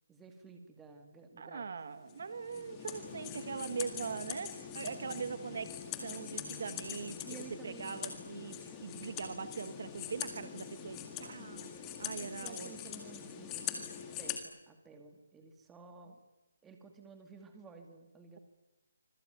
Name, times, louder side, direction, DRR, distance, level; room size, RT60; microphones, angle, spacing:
voice 1, 0.1-1.7 2.6-2.7 5.0-5.2 7.2-8.0 12.2-16.2 16.6-18.4, right 4 dB, 5° right, 4 dB, 2.2 m, -53 dB
voice 2, 1.4-5.7 6.0-13.0, right 5 dB, 45° right, 12 dB, 1.3 m, -42 dB
sound 1, 2.1-14.4, left 9 dB, 10° left, 2.1 m, -43 dB
25.5 x 21.0 x 9.3 m, 1.0 s
hypercardioid pair, 175°, 0 cm